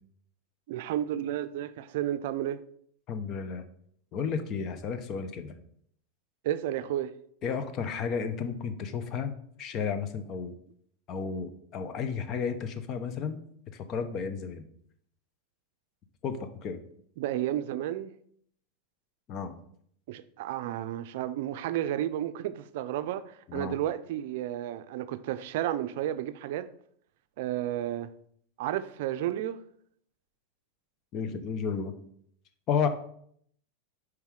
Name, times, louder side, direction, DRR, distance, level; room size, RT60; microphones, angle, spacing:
voice 1, 0.7-2.6 6.4-7.1 17.2-18.1 20.1-26.7 27.4-28.1 28.6-29.6, right 12 dB, 65° right, 0.4 m, -32 dB
voice 2, 3.1-3.6 4.1-5.5 7.4-9.3 9.6-10.5 11.1-13.4 13.7-14.6 16.2-16.8 19.3-19.5 23.5-23.7 31.1-31.9 32.7-32.9, left 6 dB, 40° left, 0.8 m, -32 dB
5.5 x 4.7 x 4.8 m
supercardioid pair, 130°, 0 cm